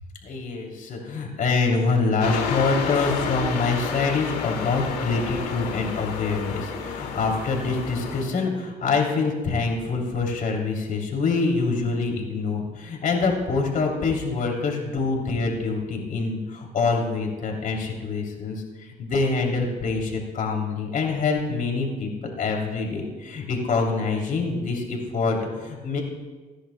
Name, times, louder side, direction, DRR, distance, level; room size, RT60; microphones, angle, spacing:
voice 1, 0.2-26.0, left 4 dB, 60° left, 0 dB, 3.0 m, -25 dB
sound 1, 2.2-8.2, left 5 dB, 80° left, 2.2 m, -30 dB
20.5 x 10.0 x 2.2 m, 1.3 s
supercardioid pair, 65°, 16 cm